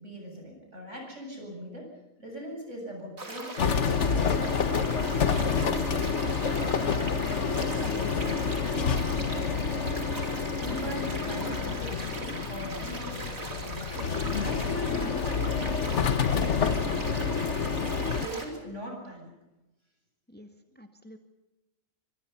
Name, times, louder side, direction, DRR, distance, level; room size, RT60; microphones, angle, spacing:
voice 1, 0.0-1.9 2.2-4.6 5.1-6.0 6.4-10.1 10.6-17.4 18.2-19.3, equal, 60° right, 1 dB, 8.4 m, -41 dB
sound 1, 3.2-18.4, right 2 dB, 85° right, 4.5 m, -39 dB
sound 2, 3.6-18.3, left 6 dB, 60° left, 1.5 m, -28 dB
voice 2, 20.3-21.2, equal, 5° left, 6 dB, 1.9 m, -50 dB
25.5 x 24.5 x 5.7 m, 1.0 s
omnidirectional pair, 1.4 m